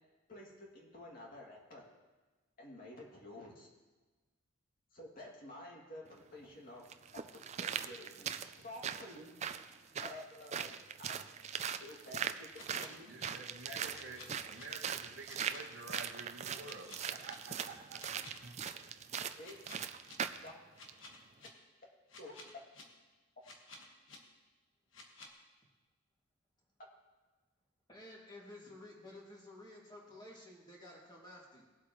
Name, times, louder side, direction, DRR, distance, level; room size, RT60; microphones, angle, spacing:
voice 1, 0.3-1.8 2.6-3.7 4.9-6.8 7.1-8.4 8.6-9.3 10.0-10.8 11.8-13.1 19.4-19.6 20.4-20.5 22.2-22.3, left 1 dB, 40° left, -2 dB, 2.5 m, -50 dB
sound 1, 6.1-6.2 6.9-20.5 20.9-21.0, right 8 dB, 35° right, 0.4 m, -41 dB
sound 2, 12.5-13.3 13.9-14.6 15.2-16.0 16.6-17.4 18.0-18.7 19.4-20.1 20.7-21.5 22.1-22.8 23.4-24.2 24.9-25.3, left 3 dB, 65° left, 1.6 m, -53 dB
voice 2, 13.0-18.5, right 3 dB, 55° right, -2 dB, 1.0 m, -50 dB
voice 3, 27.9-31.6, left 1 dB, 20° left, -3 dB, 2.4 m, -53 dB
19.5 x 8.1 x 3.1 m, 1.3 s
head